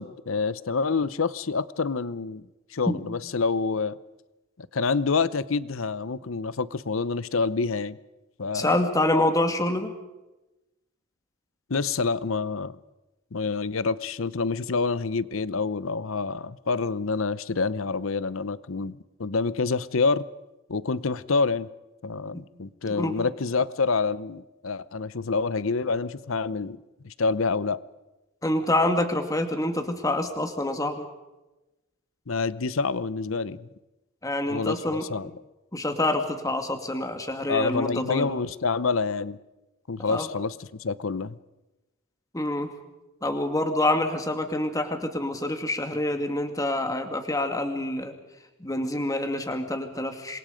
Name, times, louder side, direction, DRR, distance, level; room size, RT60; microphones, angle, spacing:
voice 1, 0.0-4.0 4.7-8.0 8.4-8.8 11.7-12.8 13.3-20.2 20.7-21.7 22.0-26.8 27.0-27.8 32.3-33.7 34.5-35.3 37.5-39.4 39.9-41.4, left 4 dB, 70° left, 0.8 m, -27 dB
voice 2, 8.5-9.9 22.3-22.4 22.9-23.3 28.4-31.1 34.2-35.1 35.7-38.3 40.1-40.3 42.3-42.7 43.2-48.1 48.6-50.4, left 1 dB, 15° left, 2.2 m, -26 dB
27.5 x 22.5 x 5.2 m
head